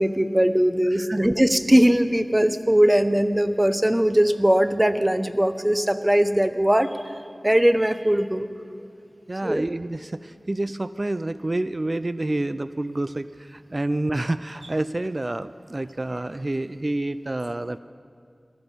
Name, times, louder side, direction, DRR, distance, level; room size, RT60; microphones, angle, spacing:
voice 1, 0.0-6.9 7.4-8.5 9.4-9.7, equal, 15° right, 10 dB, 0.8 m, -20 dB
voice 2, 9.3-17.8, right 2 dB, 45° right, 14 dB, 0.3 m, -28 dB
20.0 x 13.5 x 5.4 m, 2.4 s
wide cardioid pair, 55°, 0 cm